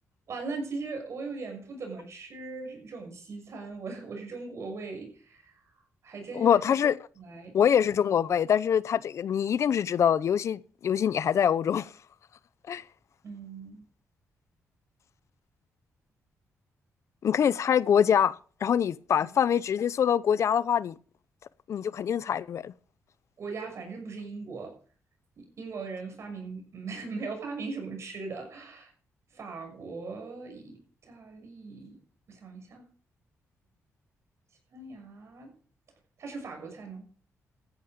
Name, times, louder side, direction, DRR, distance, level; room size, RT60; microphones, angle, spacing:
voice 1, 0.3-5.7 6.0-6.6 7.2-7.5 13.2-13.8 19.2-19.3 23.4-24.8 25.4-28.9 29.3-32.0 32.3-32.8 34.7-35.5 36.2-37.1, right 4 dB, 60° right, 6.3 m, -39 dB
voice 2, 6.3-7.0 7.5-11.9 12.7-12.8 17.2-20.9 21.7-22.7, left 8 dB, 65° left, 0.6 m, -24 dB
14.5 x 10.5 x 5.2 m
cardioid pair, 90°, 5 cm